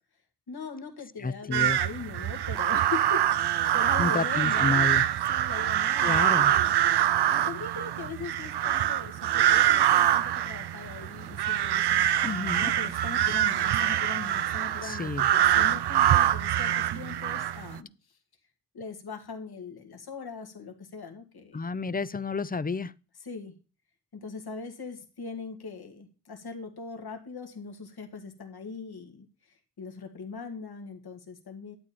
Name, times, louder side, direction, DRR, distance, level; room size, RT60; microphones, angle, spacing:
voice 1, 0.5-4.9 5.3-6.7 7.3-12.1 12.5-18.2 18.7-21.6 23.2-23.6 24.1-31.7, left 4 dB, 70° left, 2.1 m, -40 dB
voice 2, 1.2-1.8 4.0-5.0 6.0-6.5 12.2-12.7 14.8-15.3 21.5-22.9, left 4 dB, 25° left, 0.6 m, -30 dB
sound 1, 1.5-17.8, right 11 dB, 80° right, 0.6 m, -25 dB
11.5 x 8.8 x 4.3 m
cardioid pair, 55°, 39 cm